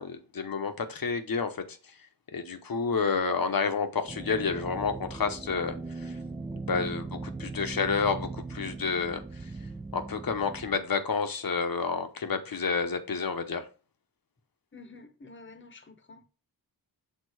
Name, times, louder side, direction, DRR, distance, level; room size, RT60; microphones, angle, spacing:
voice 1, 0.0-1.8 2.3-6.2 6.5-9.2 9.9-13.7, left 5 dB, 60° left, 1.0 m, -30 dB
sound 1, 4.1-10.8, right 3 dB, 15° right, 0.3 m, -39 dB
voice 2, 14.7-16.3, left 3 dB, 30° left, 0.9 m, -49 dB
6.7 x 3.6 x 4.8 m
wide cardioid pair, 100°, 39 cm